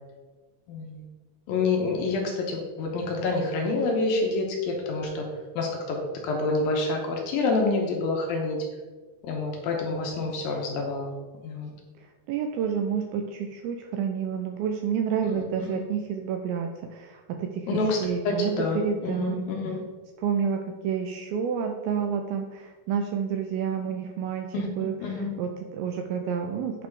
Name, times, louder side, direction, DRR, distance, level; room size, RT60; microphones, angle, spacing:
voice 1, 0.7-1.0 1.5-5.3 5.6-6.0 6.2-8.6 9.2-11.1 11.4-11.7 15.2-15.8 17.7-18.0 18.2-19.8 24.5-24.7 25.0-25.3, left 3 dB, 70° left, 1 dB, 2.4 m, -27 dB
voice 2, 12.3-19.4 20.2-25.0 25.4-26.9, right 7 dB, 85° right, 4 dB, 2.2 m, -29 dB
8.6 x 4.1 x 4.6 m, 1.3 s
omnidirectional pair, 4.7 m